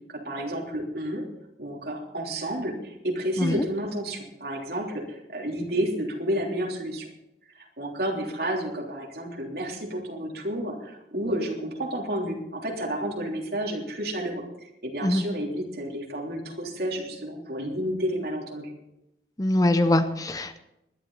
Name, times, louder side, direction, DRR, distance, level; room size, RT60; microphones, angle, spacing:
voice 1, 0.1-1.2 1.6-7.1 7.8-14.4 14.8-18.7, right 1 dB, 60° right, -1 dB, 3.4 m, -31 dB
voice 2, 19.4-20.6, left 1 dB, 20° left, 10 dB, 0.6 m, -23 dB
20.0 x 11.5 x 4.0 m, 0.87 s
head